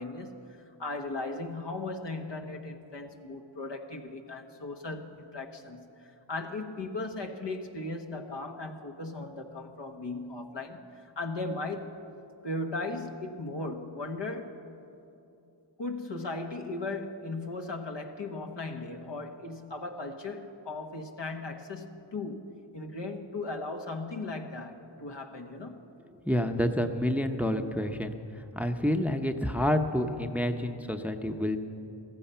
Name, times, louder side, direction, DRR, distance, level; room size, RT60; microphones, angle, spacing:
voice 1, 0.0-12.0 12.4-14.6 15.8-25.9, left 2 dB, 65° left, 4 dB, 1.3 m, -37 dB
voice 2, 26.2-28.2 28.6-31.6, left 1 dB, 5° right, 7 dB, 0.8 m, -28 dB
14.5 x 14.5 x 5.6 m, 2.8 s
cardioid pair, 45°, 47 cm